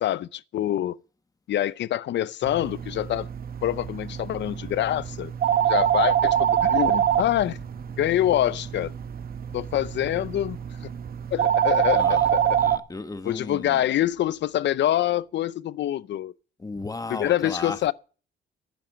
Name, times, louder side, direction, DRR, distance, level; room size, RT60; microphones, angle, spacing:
voice 1, 0.0-1.0 1.5-3.3 3.6-5.3 5.7-7.6 8.0-8.9 9.5-10.6 11.3-12.6 13.3-16.3 17.1-17.9, left 12 dB, 65° left, 0.6 m, -25 dB
sound 1, 2.4-12.8, right 10 dB, 50° right, 0.9 m, -25 dB
voice 2, 11.9-12.3 12.6-13.9 16.6-17.9, left 3 dB, 20° left, 1.1 m, -35 dB
sound 2, 13.7-15.1, right 2 dB, 90° right, 4.3 m, -51 dB
10.5 x 10.5 x 7.2 m
cardioid pair, 90°, 20 cm